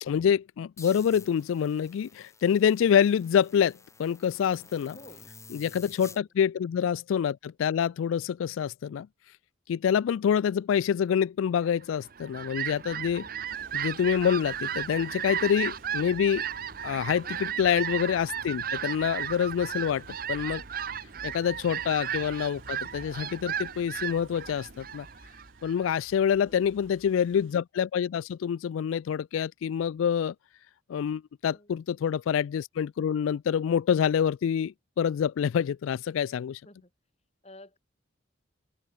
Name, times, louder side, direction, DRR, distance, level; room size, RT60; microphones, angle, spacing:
voice 1, 0.0-4.9 5.5-9.1 9.7-13.3 13.7-16.4 16.8-20.0 20.3-20.6 21.2-25.1 25.6-30.3 30.9-36.6, left 8 dB, 85° left, 0.3 m, -26 dB
sound 1, 0.8-6.2, left 4 dB, 15° left, 2.6 m, -51 dB
voice 2, 4.9-5.2 6.1-6.3 26.3-26.7 31.4-31.8 36.4-36.9 37.4-37.8, left 1 dB, 30° left, 7.9 m, -52 dB
Fowl, 11.9-25.9, right 9 dB, 45° right, 0.8 m, -35 dB
sound 2, 13.5-27.6, right 1 dB, 85° right, 5.2 m, -54 dB
open air
head